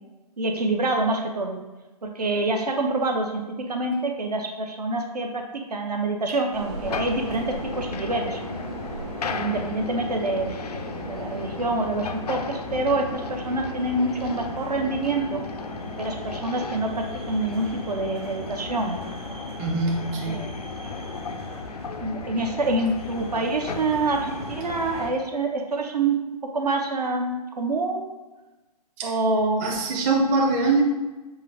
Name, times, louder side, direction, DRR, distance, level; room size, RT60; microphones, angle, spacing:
voice 1, 0.4-1.6 2.0-8.4 9.3-15.4 16.0-19.0 20.3-20.6 22.0-26.2 26.5-28.1 29.0-29.6, right 2 dB, 75° right, 3 dB, 0.7 m, -26 dB
sound 1, 6.5-25.1, right 2 dB, 45° right, 0.9 m, -39 dB
sound 2, 6.9-25.1, left 4 dB, 75° left, 0.4 m, -35 dB
voice 2, 19.6-20.5 29.0-29.1 29.6-30.8, right 3 dB, 25° right, 0 dB, 0.5 m, -23 dB
5.6 x 2.4 x 3.2 m, 1.1 s
figure-of-eight pair, 130°, 20 cm